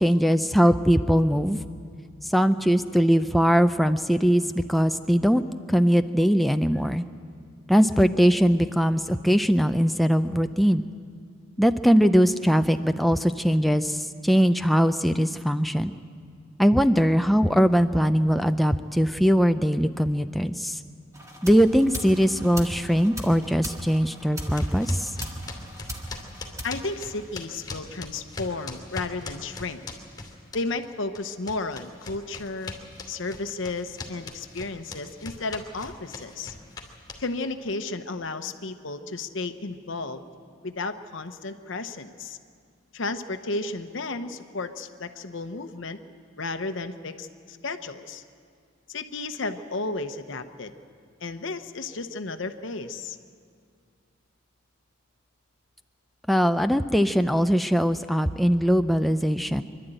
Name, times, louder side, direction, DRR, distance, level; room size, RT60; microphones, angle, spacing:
voice 1, 0.0-1.6 2.2-4.4 4.7-5.4 5.7-7.0 7.7-10.8 11.6-15.9 16.6-20.8 21.4-25.1 56.3-59.6, equal, ahead, 8 dB, 0.4 m, -21 dB
sound 1, 21.1-27.7, right 1 dB, 15° right, 1.7 m, -39 dB
sound 2, 24.5-30.9 31.1-37.5, left 3 dB, 20° left, 2.6 m, -40 dB
voice 2, 26.6-29.8 30.5-32.7 33.1-36.5 37.2-40.2 40.6-42.4 42.9-46.0 46.4-48.2 48.9-50.7 51.2-53.2, left 3 dB, 65° left, 9 dB, 0.9 m, -33 dB
25.0 x 12.0 x 9.0 m, 2.2 s
head